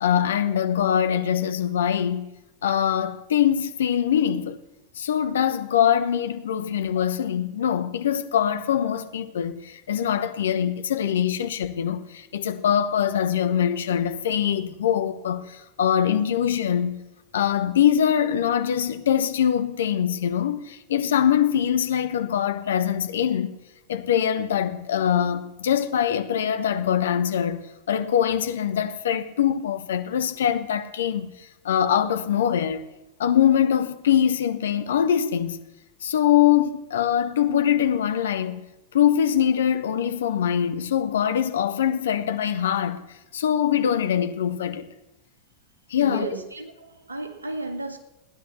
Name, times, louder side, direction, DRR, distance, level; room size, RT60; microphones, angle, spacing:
voice 1, 0.0-2.2 2.6-4.6 5.0-17.0 17.3-23.6 23.9-27.6 27.9-31.3 31.6-32.9 33.2-35.6 36.0-38.6 38.9-43.0 43.3-44.9 45.9-46.3, left 9 dB, 65° left, 1.1 m, -23 dB
voice 2, 46.0-48.0, right 2 dB, 75° right, 2.0 m, -34 dB
16.5 x 10.5 x 7.0 m
figure-of-eight pair, 90°, 0 cm